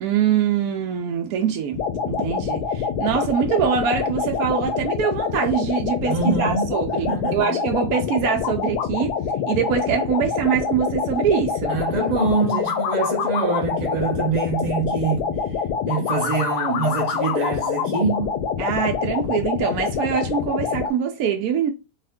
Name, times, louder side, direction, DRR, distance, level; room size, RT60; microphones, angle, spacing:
voice 1, 0.0-9.1 9.5-11.8 18.6-21.7, right 8 dB, 75° right, 1.0 m, -24 dB
sound 1, 1.7-20.9, left 6 dB, 80° left, 1.1 m, -25 dB
voice 2, 6.1-6.7 7.1-7.5 11.7-15.4 15.9-18.4, right 4 dB, 45° right, 0.5 m, -24 dB
3.5 x 2.4 x 3.4 m
omnidirectional pair, 1.7 m